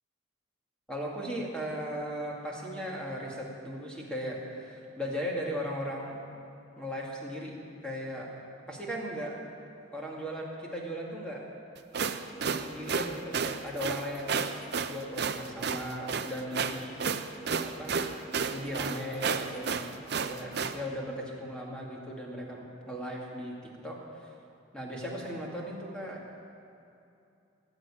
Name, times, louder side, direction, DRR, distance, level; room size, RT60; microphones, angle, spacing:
voice 1, 0.9-6.3 6.8-8.4 8.7-9.5 9.9-11.5 12.6-14.4 14.8-17.0 17.6-18.0 18.5-24.3 24.7-26.4, equal, 5° left, -3 dB, 2.2 m, -37 dB
sound 1, 11.8-20.8, right 5 dB, 55° right, 0.7 m, -32 dB
18.5 x 7.8 x 8.8 m, 2.7 s
head